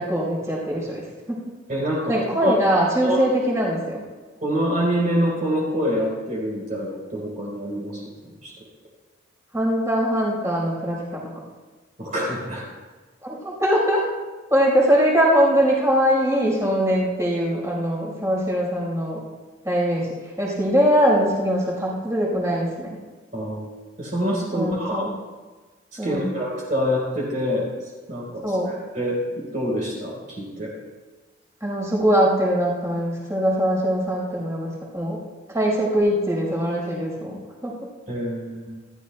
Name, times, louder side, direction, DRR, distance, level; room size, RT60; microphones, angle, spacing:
voice 1, 0.0-1.4 2.1-4.0 9.5-11.3 13.2-14.0 14.5-19.2 19.6-23.0 24.5-25.1 26.0-26.3 28.4-28.7 31.6-35.2 35.5-37.7, equal, 15° right, -3 dB, 4.7 m, -22 dB
voice 2, 1.7-2.6 3.0-3.2 4.4-8.0 8.4-8.5 12.0-12.7 23.3-23.7 24.0-25.1 26.0-27.7 28.1-30.7 38.1-38.7, equal, 40° right, -5 dB, 4.3 m, -26 dB
28.0 x 13.0 x 2.3 m, 1.3 s
head